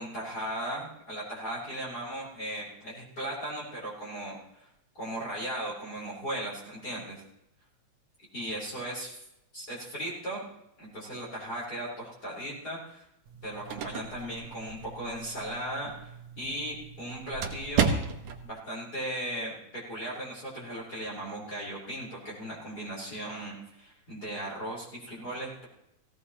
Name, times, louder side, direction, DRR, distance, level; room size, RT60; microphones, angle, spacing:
voice 1, 0.0-4.7 5.0-7.2 8.3-9.2 9.5-10.4 10.8-13.0 13.4-16.1 16.4-18.0 18.4-25.7, right 1 dB, 30° left, -6 dB, 4.3 m, -37 dB
sound 1, 13.3-18.5, right 6 dB, 80° right, 2.5 m, -34 dB
17.0 x 16.5 x 2.9 m, 0.85 s
omnidirectional pair, 3.3 m